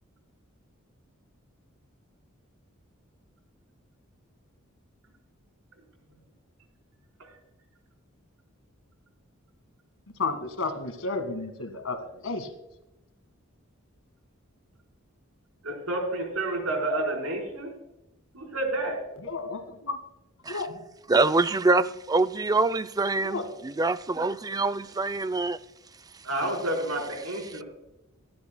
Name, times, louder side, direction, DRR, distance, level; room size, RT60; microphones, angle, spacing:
voice 1, 10.2-12.5 19.2-20.0 20.5-20.8 23.2-23.5, left 3 dB, 75° left, 1.9 m, -32 dB
voice 2, 15.6-17.7 18.3-18.9 26.2-27.6, right 1 dB, 90° right, 4.4 m, -29 dB
voice 3, 21.1-25.6, right 3 dB, 20° right, 0.4 m, -25 dB
25.5 x 11.5 x 2.2 m
head